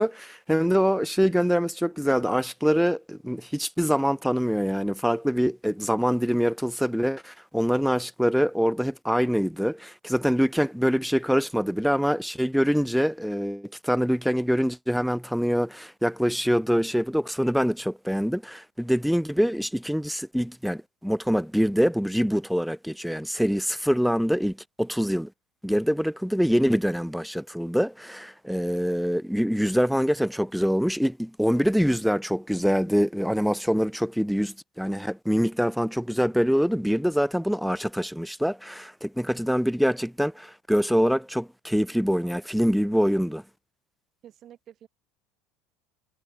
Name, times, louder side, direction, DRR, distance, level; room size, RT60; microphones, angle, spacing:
voice 1, 0.0-25.3 25.6-43.4, equal, ahead, 0.8 m, -24 dB
voice 2, 44.2-44.9, right 11 dB, 45° right, 5.0 m, -49 dB
hypercardioid pair, 70°, 0 cm